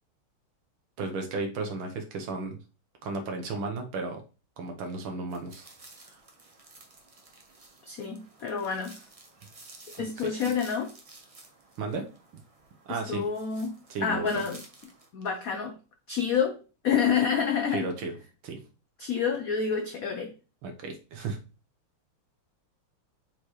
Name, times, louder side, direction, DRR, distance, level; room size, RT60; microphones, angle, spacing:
voice 1, 1.0-2.6 3.0-4.2 4.6-5.7 9.9-10.3 11.8-12.1 12.9-13.3 13.9-14.4 17.7-18.1 18.4-18.6 20.6-21.4, right 3 dB, 70° right, 4 dB, 1.8 m, -34 dB
sound 1, 5.3-15.1, right 2 dB, 35° right, 0.5 m, -53 dB
voice 2, 7.9-9.0 10.0-10.9 12.9-14.6 15.1-15.8 16.1-16.6 16.8-17.9 19.0-20.3, left 6 dB, 80° left, 4 dB, 0.8 m, -28 dB
7.0 x 4.4 x 3.2 m, 0.34 s
omnidirectional pair, 2.4 m